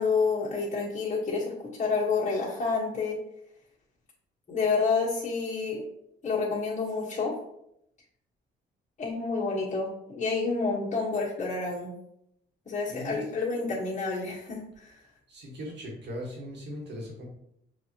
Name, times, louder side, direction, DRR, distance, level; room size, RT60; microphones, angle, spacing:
voice 1, 0.0-3.2 4.5-5.8 6.2-7.3 9.0-11.9 12.6-15.0, left 4 dB, 35° left, -7 dB, 1.6 m, -29 dB
voice 2, 12.9-13.2 15.3-17.2, equal, 60° right, -2 dB, 1.7 m, -39 dB
6.2 x 2.8 x 3.0 m, 0.78 s
cardioid pair, 90°, 20 cm